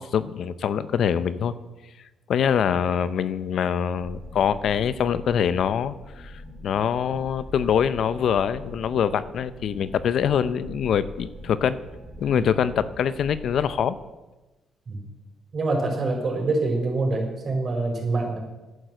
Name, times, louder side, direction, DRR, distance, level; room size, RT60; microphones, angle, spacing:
voice 1, 0.0-1.5 2.3-6.3 6.6-11.8 12.2-14.0, left 8 dB, 65° left, 15 dB, 0.7 m, -24 dB
sound 1, 3.9-13.8, left 1 dB, 5° right, 4.3 m, -42 dB
voice 2, 15.5-18.4, right 2 dB, 45° right, 1 dB, 4.9 m, -25 dB
11.0 x 9.4 x 7.7 m, 1.1 s
cardioid pair, 90°, 0 cm